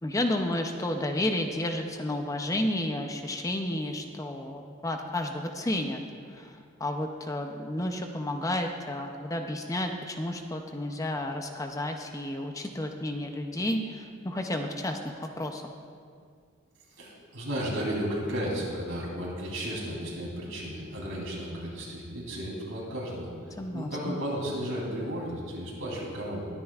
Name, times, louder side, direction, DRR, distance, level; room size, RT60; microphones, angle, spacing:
voice 1, 0.0-15.7 23.6-24.2, left 1 dB, 15° left, 4 dB, 0.5 m, -32 dB
voice 2, 17.0-26.5, equal, 70° right, -4 dB, 3.3 m, -34 dB
21.5 x 9.8 x 2.4 m, 2.2 s
head